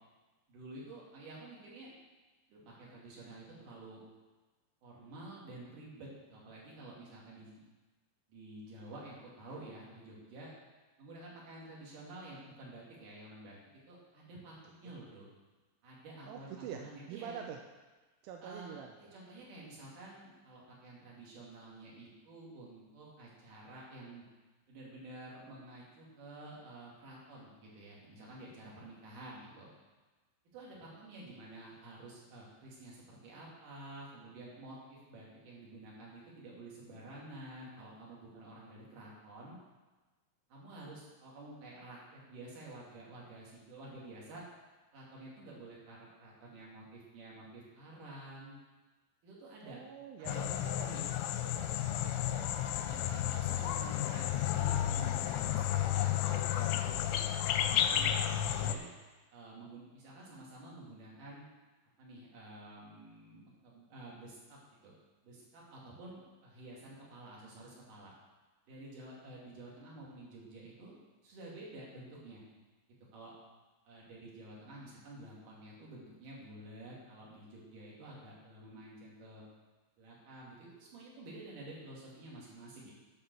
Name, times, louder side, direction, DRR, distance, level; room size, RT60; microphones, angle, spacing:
voice 1, 0.5-1.9 2.5-4.0 4.8-7.6 8.3-10.5 11.0-13.6 13.9-15.3 15.8-17.4 18.4-24.2 24.7-29.7 30.5-39.6 40.5-44.4 44.9-48.6 49.2-49.8 50.2-50.4 50.8-51.1 52.7-58.1 58.4-58.9 59.3-61.5 62.0-64.9 65.2-68.1 68.7-71.0 71.2-72.4 73.1-73.3 73.9-79.4 80.0-82.9, right 2 dB, 45° right, -5 dB, 3.6 m, -50 dB
voice 2, 16.3-16.8 17.1-17.6 18.2-19.0 49.6-50.9 51.4-52.7, right 8 dB, 85° right, 3 dB, 3.0 m, -46 dB
sound 1, 50.3-58.8, left 11 dB, 90° left, 3.2 m, -32 dB
11.0 x 5.8 x 6.9 m, 1.2 s
omnidirectional pair, 5.7 m